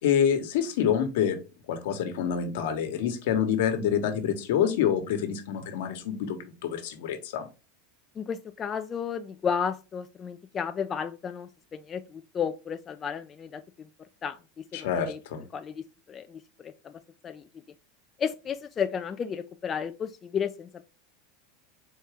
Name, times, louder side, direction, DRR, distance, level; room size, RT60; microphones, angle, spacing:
voice 1, 0.0-1.4 1.7-7.5 14.7-15.4, left 8 dB, 75° left, 7 dB, 1.2 m, -27 dB
voice 2, 8.2-13.9 14.2-15.2 15.5-17.5 18.2-20.9, left 7 dB, 25° left, 8 dB, 0.3 m, -33 dB
4.2 x 3.6 x 3.5 m, 0.31 s
supercardioid pair, 140°, 0 cm